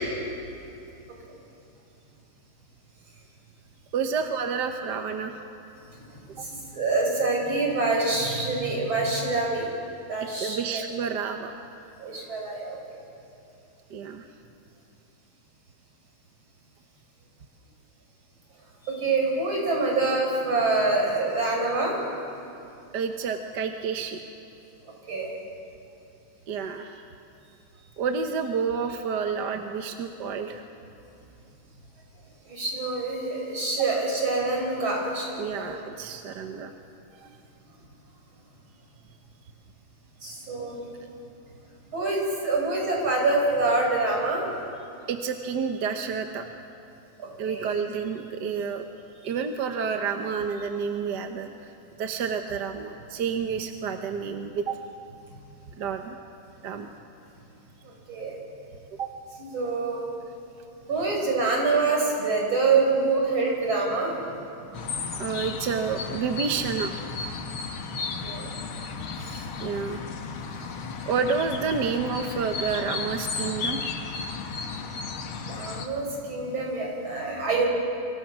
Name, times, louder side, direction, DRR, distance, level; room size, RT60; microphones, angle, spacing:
voice 1, 3.9-5.4 10.4-11.6 13.9-14.3 22.9-24.2 26.5-27.1 27.4-30.6 35.4-36.7 37.2-37.3 45.1-46.5 47.4-48.9 49.2-51.7 52.0-54.8 55.8-56.2 56.6-56.9 59.0-59.1 65.2-66.9 69.6-70.1 71.0-74.2, right 6 dB, 60° right, 5 dB, 1.6 m, -29 dB
voice 2, 6.3-9.6 10.1-10.8 12.0-13.0 18.8-22.0 25.1-25.3 32.5-35.7 40.2-40.9 41.9-44.4 47.2-47.7 57.8-58.4 59.4-60.1 60.9-64.1 68.2-68.5 69.2-69.4 69.8-69.9 75.5-77.6, right 3 dB, 75° right, 0 dB, 5.9 m, -26 dB
sound 1, 64.7-75.9, left 4 dB, 85° left, 2.3 m, -34 dB
28.5 x 25.0 x 6.2 m, 2.7 s
omnidirectional pair, 2.2 m